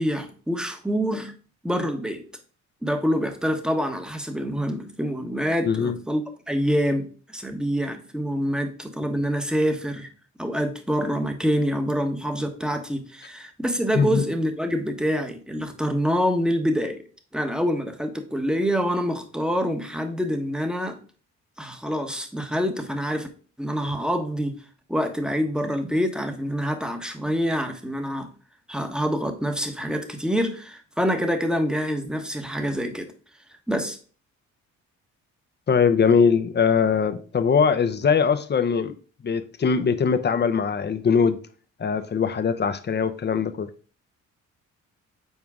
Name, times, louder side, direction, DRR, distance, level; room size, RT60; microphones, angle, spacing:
voice 1, 0.0-1.3 1.6-2.2 2.8-10.1 10.4-17.0 17.3-21.0 21.6-23.3 23.6-24.6 24.9-28.3 28.7-33.1 33.7-34.0, equal, 5° right, 1.2 m, -26 dB
voice 2, 5.6-6.0 13.9-14.2 35.7-38.9 39.2-41.4 41.8-43.7, left 6 dB, 35° left, 0.8 m, -21 dB
7.4 x 4.5 x 3.6 m
cardioid pair, 90°, 30 cm